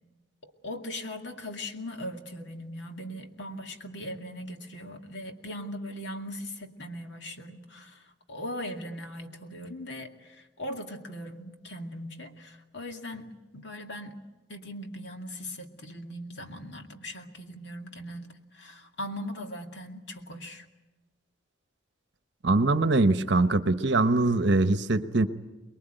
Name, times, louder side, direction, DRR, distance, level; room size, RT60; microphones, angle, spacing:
voice 1, 0.6-8.0 8.3-14.2 14.5-20.7, left 1 dB, 60° left, 5 dB, 2.3 m, -39 dB
voice 2, 22.4-25.3, right 2 dB, 60° right, 11 dB, 1.1 m, -23 dB
24.5 x 22.0 x 9.1 m, 1.1 s
head